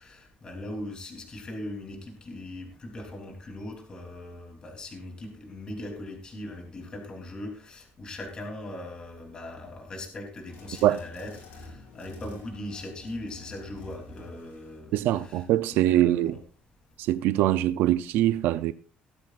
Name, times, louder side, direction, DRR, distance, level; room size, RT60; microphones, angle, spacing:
voice 1, 0.0-15.4 15.7-16.4, left 1 dB, 25° left, 3.3 m, -40 dB
sound 1, 10.4-15.5, left 2 dB, 85° left, 7.8 m, -48 dB
voice 2, 14.9-16.4 17.0-18.7, right 13 dB, 80° right, 0.5 m, -23 dB
17.5 x 13.5 x 2.5 m
cardioid pair, 175°, 3 cm